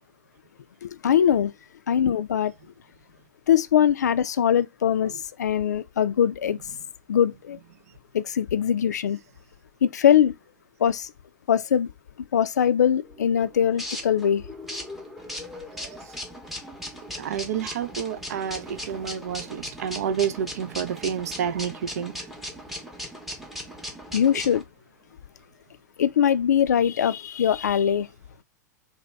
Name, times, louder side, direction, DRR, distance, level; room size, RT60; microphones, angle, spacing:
voice 1, 0.8-1.5 1.9-2.5 3.5-6.6 7.1-7.6 8.1-9.2 9.8-10.3 10.8-11.1 11.5-11.9 12.3-14.4 24.1-24.6 26.0-28.1, left 9 dB, 70° left, 0.4 m, -22 dB
sound 1, 13.0-24.6, left 1 dB, ahead, 0.7 m, -38 dB
voice 2, 17.2-22.3, right 8 dB, 60° right, 0.4 m, -29 dB
2.8 x 2.2 x 3.3 m
figure-of-eight pair, 95°, 10 cm